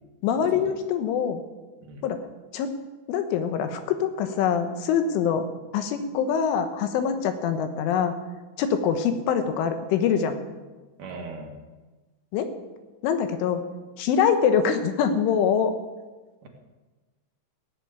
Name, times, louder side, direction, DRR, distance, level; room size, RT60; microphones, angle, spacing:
voice 1, 0.2-1.4 2.0-2.2 2.5-2.7 3.1-5.4 5.7-8.1 8.6-10.4 12.3-12.5 13.0-13.6 14.0-15.7, left 7 dB, 90° left, 8 dB, 3.7 m, -24 dB
voice 2, 11.0-11.5 16.4-16.5, right 3 dB, 55° right, 0 dB, 2.9 m, -39 dB
16.0 x 8.4 x 8.3 m, 1.2 s
omnidirectional pair, 5.5 m